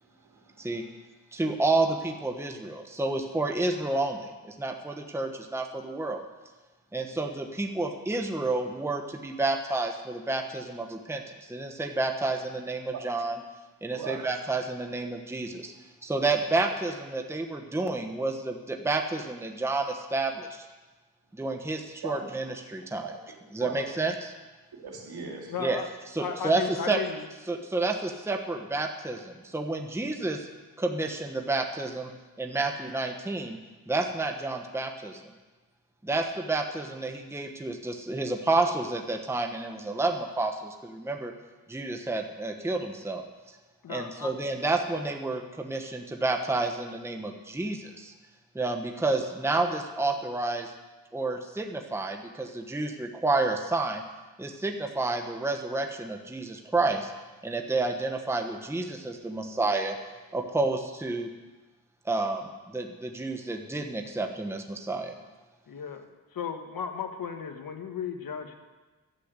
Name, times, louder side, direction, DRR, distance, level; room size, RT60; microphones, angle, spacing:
voice 1, 0.2-0.9 12.9-13.0 13.9-14.2 22.0-22.2 23.0-23.1 23.6-24.0 24.8-25.5, right 6 dB, 70° right, -1 dB, 3.2 m, -39 dB
voice 2, 1.3-6.2 6.9-13.4 13.8-15.7 16.0-20.7 21.3-23.0 23.5-24.3 25.6-25.8 26.1-27.0 27.5-30.5 30.8-32.1 32.4-33.6 33.9-35.2 36.0-41.3 41.7-43.2 43.9-48.1 48.5-50.7 51.1-54.0 54.4-57.1 57.4-60.0 60.3-61.3 62.0-65.2, right 2 dB, 5° right, 3 dB, 1.1 m, -30 dB
voice 3, 25.5-25.9 26.2-27.2 43.8-44.3 65.7-66.0 66.3-68.5, left 6 dB, 60° left, 6 dB, 1.5 m, -35 dB
12.0 x 7.7 x 8.1 m, 1.2 s
cardioid pair, 85°, 39 cm